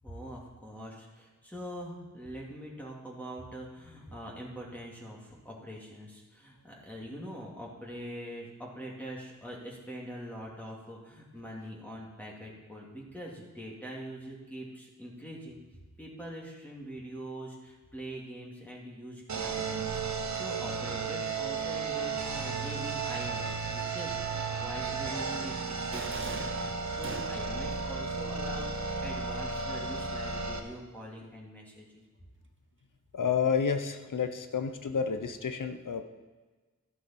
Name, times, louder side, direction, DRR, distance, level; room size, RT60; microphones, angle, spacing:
voice 1, 0.0-15.6 16.0-32.0, equal, 5° left, -5 dB, 2.5 m, -43 dB
sound 1, 19.3-30.6, right 4 dB, 65° right, 1.2 m, -34 dB
sound 2, 25.9-27.7, right 4 dB, 40° right, 0.8 m, -42 dB
voice 2, 33.1-36.0, left 6 dB, 85° left, 8 dB, 1.0 m, -30 dB
13.0 x 11.0 x 4.5 m, 1.3 s
wide cardioid pair, 95°, 31 cm